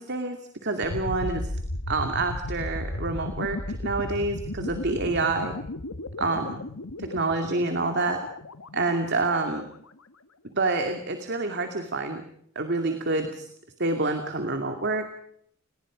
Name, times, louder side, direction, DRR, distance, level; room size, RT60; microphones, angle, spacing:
voice 1, 0.0-1.5 1.9-5.5 6.2-6.6 7.0-8.2 8.7-9.6 10.5-12.2 12.6-13.5 13.8-15.2, right 3 dB, 50° right, 6 dB, 2.4 m, -27 dB
sound 1, 0.8-9.7, left 1 dB, 85° left, 1.5 m, -35 dB
29.5 x 20.0 x 5.1 m, 0.69 s
head